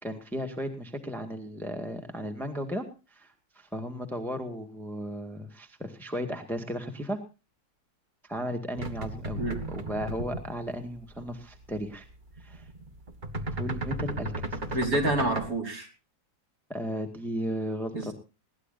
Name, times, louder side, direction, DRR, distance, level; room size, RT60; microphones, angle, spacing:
voice 1, 0.0-7.2 8.2-9.4 9.7-12.1 12.4-12.7 13.5-14.8 16.7-18.1, equal, ahead, 5 dB, 1.8 m, -35 dB
sound 1, 8.7-10.6 11.0-11.3 11.5-11.8 12.0-15.5, right 2 dB, 25° right, 1.6 m, -35 dB
voice 2, 14.7-15.9 17.9-18.1, right 1 dB, 50° right, 2 dB, 5.5 m, -28 dB
21.5 x 17.5 x 2.7 m, 0.33 s
omnidirectional pair, 2.0 m